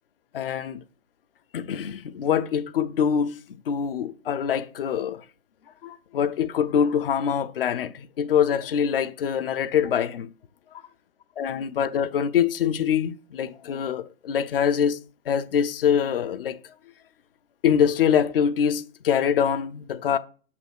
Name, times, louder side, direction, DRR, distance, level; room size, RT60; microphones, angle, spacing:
voice 1, 0.3-0.8 1.5-3.4 3.7-5.2 5.8-10.3 11.4-15.0 15.3-16.6 17.6-20.2, left 8 dB, 40° left, 0.7 m, -24 dB
7.2 x 5.9 x 6.0 m
hypercardioid pair, 150°, 43 cm